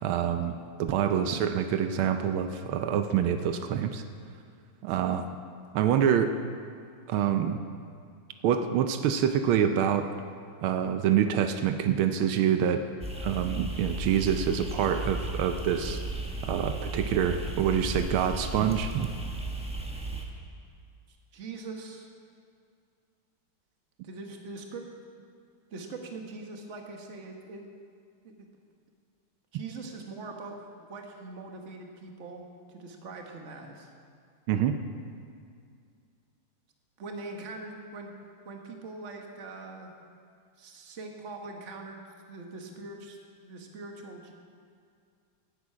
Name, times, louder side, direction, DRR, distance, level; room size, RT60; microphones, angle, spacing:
voice 1, 0.0-4.0 4.8-5.3 5.7-6.3 7.1-7.6 8.4-10.1 10.6-12.8 13.2-16.0 16.4-19.1 34.5-34.8, right 8 dB, 85° right, 8 dB, 1.5 m, -26 dB
sound 1, 13.0-20.2, right 2 dB, 5° right, 0.7 m, -35 dB
voice 2, 21.1-22.1 24.0-24.8 25.7-27.6 28.2-28.5 29.5-33.9 37.0-38.1 38.4-39.9 40.6-42.0 42.3-44.3, right 3 dB, 40° right, 2 dB, 1.4 m, -42 dB
11.5 x 8.3 x 8.5 m, 2.3 s
omnidirectional pair, 2.3 m